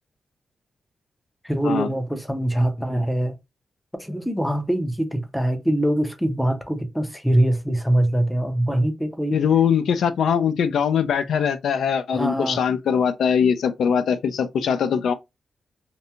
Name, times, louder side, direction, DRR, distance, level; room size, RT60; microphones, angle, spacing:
voice 1, 1.4-3.4 4.0-9.4 12.1-12.6, right 1 dB, ahead, 0.4 m, -23 dB
voice 2, 9.3-15.1, left 7 dB, 85° left, 0.3 m, -21 dB
2.6 x 2.2 x 2.7 m
wide cardioid pair, 180°, 0 cm